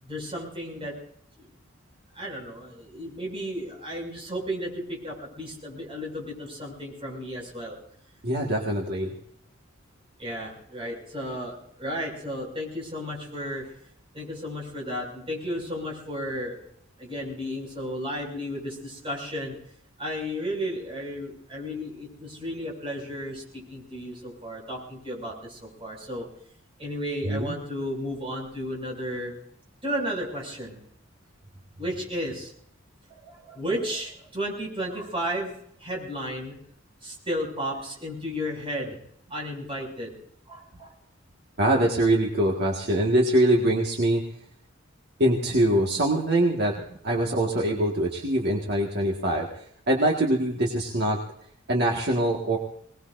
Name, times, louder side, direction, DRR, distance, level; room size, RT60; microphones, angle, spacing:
voice 1, 0.0-0.9 1.4-1.5 2.1-7.8 10.2-13.7 14.1-16.6 17.0-19.5 20.0-26.3 26.8-29.3 29.8-30.8 31.8-32.5 33.1-35.5 35.8-36.6 37.0-39.0 39.3-40.1 40.5-40.9, equal, 30° right, -1 dB, 6.3 m, -33 dB
voice 2, 8.2-9.1 27.3-27.6 41.6-44.2 45.2-46.7 47.0-51.2 51.7-52.6, right 1 dB, 55° right, 0 dB, 1.8 m, -23 dB
25.0 x 19.5 x 2.6 m, 0.68 s
head